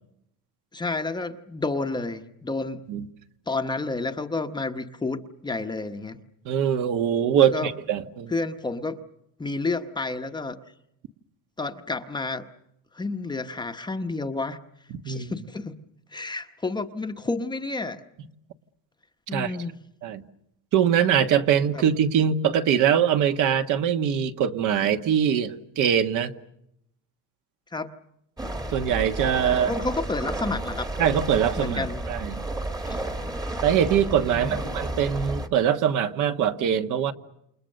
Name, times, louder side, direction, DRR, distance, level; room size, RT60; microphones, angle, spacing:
voice 1, 0.7-2.8 3.5-6.2 7.4-7.7 8.3-9.0 9.4-10.6 11.6-12.5 12.9-14.6 15.0-15.8 16.1-18.0 19.3-19.7 21.7-21.8 27.7-27.9 29.7-30.9 31.6-32.1 32.8-33.0 34.2-34.7, left 3 dB, 10° left, 6 dB, 1.0 m, -30 dB
voice 2, 6.4-8.3 14.9-15.3 19.3-19.5 20.0-20.2 20.7-26.3 28.7-29.7 31.0-32.4 33.6-37.1, right 8 dB, 55° right, 8 dB, 1.6 m, -23 dB
sound 1, 28.4-35.5, right 1 dB, 10° right, 1.4 m, -32 dB
29.0 x 29.0 x 6.6 m, 0.81 s
cardioid pair, 170°, 36 cm